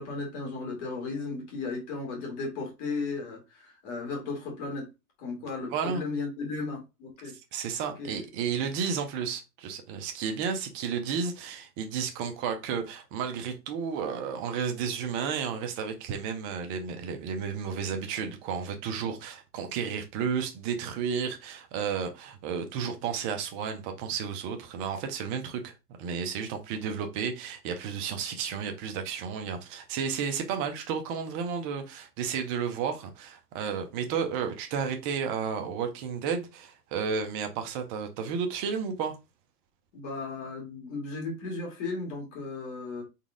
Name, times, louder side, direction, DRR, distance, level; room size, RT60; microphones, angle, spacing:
voice 1, 0.0-4.9 5.2-7.3 8.0-8.2 39.9-43.0, left 3 dB, 45° left, 2.5 m, -35 dB
voice 2, 5.7-6.0 7.5-25.7 26.0-39.2, right 6 dB, 20° right, 0.4 m, -32 dB
4.1 x 3.5 x 3.6 m
hypercardioid pair, 145°, 49 cm